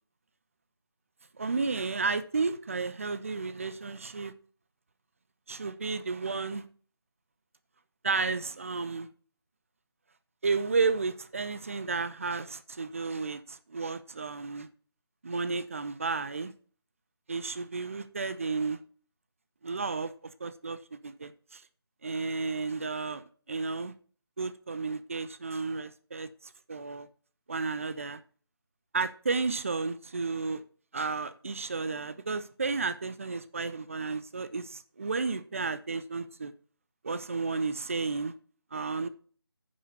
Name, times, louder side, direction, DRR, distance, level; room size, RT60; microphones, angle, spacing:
voice 1, 1.4-4.3 5.5-6.6 8.0-9.1 10.4-14.7 15.2-16.5 17.3-18.8 19.6-20.1 20.4-20.8 21.0-21.6 22.0-23.9 24.4-26.3 26.7-27.1 27.5-28.2 28.9-30.6 30.9-36.5 37.0-38.3 38.7-39.1, right 4 dB, 30° right, 0.6 m, -32 dB
9.6 x 5.8 x 5.5 m
figure-of-eight pair, 155°, 13 cm